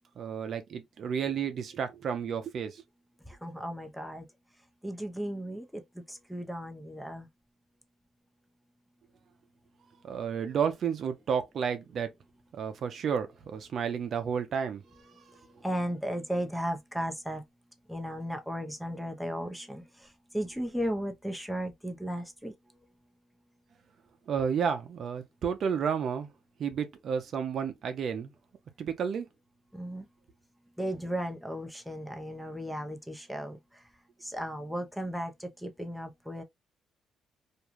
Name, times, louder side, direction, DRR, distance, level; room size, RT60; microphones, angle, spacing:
voice 1, 0.2-2.8 10.0-12.1 12.5-14.8 24.3-26.3 26.6-28.3 28.8-29.3, right 7 dB, 60° right, 0.5 m, -31 dB
voice 2, 3.3-4.3 4.8-5.8 6.1-7.3 15.6-17.4 17.9-20.1 20.3-22.5 29.7-30.1 30.8-33.6 34.2-36.4, equal, ahead, 0.6 m, -35 dB
2.5 x 2.2 x 3.0 m
cardioid pair, 90°, 0 cm